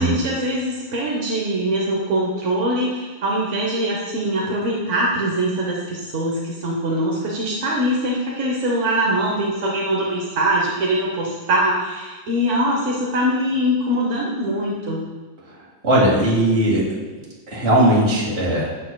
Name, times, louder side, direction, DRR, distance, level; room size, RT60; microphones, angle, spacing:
voice 1, 0.0-15.0, right 1 dB, 55° right, -3 dB, 0.9 m, -22 dB
voice 2, 15.8-16.9 17.5-18.7, right 1 dB, 35° right, -5 dB, 2.0 m, -18 dB
7.7 x 7.1 x 2.2 m, 1.3 s
omnidirectional pair, 2.1 m